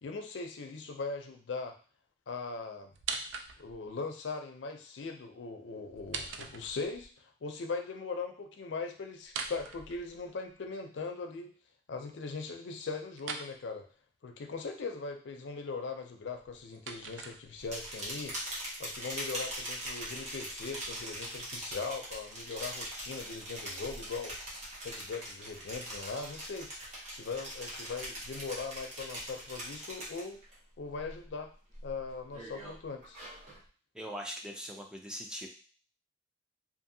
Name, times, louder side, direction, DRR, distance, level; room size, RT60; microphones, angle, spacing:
voice 1, 0.0-1.7 2.3-2.9 3.6-7.1 7.4-11.5 11.9-13.8 14.2-18.3 18.8-24.3 24.8-26.7 27.1-30.4 30.8-31.5 31.8-33.2, left 4 dB, 75° left, 5 dB, 0.5 m, -40 dB
sound 1, 2.9-3.9 5.9-7.1 9.2-10.5 13.2-13.5 16.2-17.9, right 5 dB, 90° right, 0.4 m, -41 dB
sound 2, 17.6-30.5 30.9-31.3 31.7-33.6, right 1 dB, 40° right, 1.0 m, -42 dB
voice 2, 33.9-35.5, equal, 5° right, 1 dB, 0.3 m, -41 dB
2.6 x 2.6 x 2.6 m, 0.39 s
head